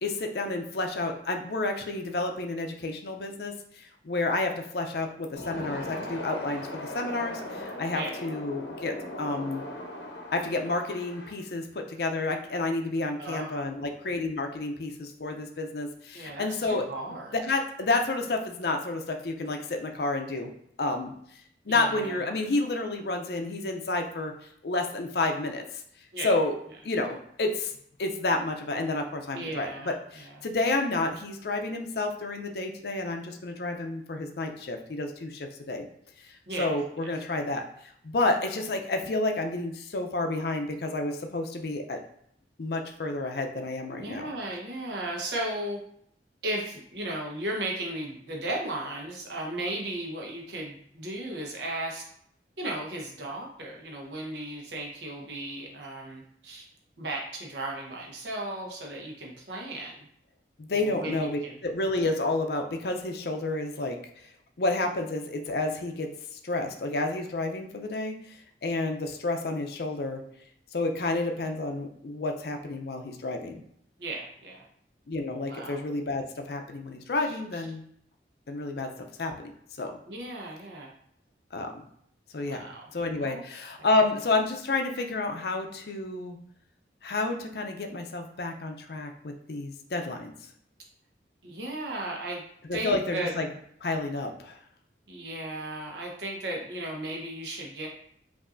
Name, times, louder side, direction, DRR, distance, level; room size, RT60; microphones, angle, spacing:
voice 1, 0.0-9.6 10.3-16.9 17.3-20.5 20.8-21.1 21.7-24.3 24.6-25.8 26.2-26.6 26.8-27.7 28.0-35.8 36.2-36.3 36.6-42.0 42.6-44.3 60.6-64.3 64.6-70.2 70.7-73.6 75.1-77.8 78.5-79.5 79.8-80.0 81.5-81.9 82.3-82.7 82.9-86.4 87.0-90.3 92.7-93.5 93.8-94.6, left 2 dB, 65° left, 4 dB, 0.5 m, -30 dB
sound 1, 5.3-11.3, left 1 dB, 85° left, 0.8 m, -39 dB
voice 2, 13.2-13.7 16.1-17.3 21.7-22.1 26.1-26.3 29.3-30.3 36.5-36.7 43.9-45.8 46.4-52.1 52.6-56.7 57.0-60.1 60.7-61.5 74.0-74.6 75.5-75.8 77.5-77.6 80.1-80.9 82.5-82.9 83.2-83.4 91.4-92.4 92.7-93.3 95.1-97.9, right 1 dB, 75° right, -1 dB, 1.0 m, -35 dB
5.4 x 2.6 x 2.5 m, 0.67 s
head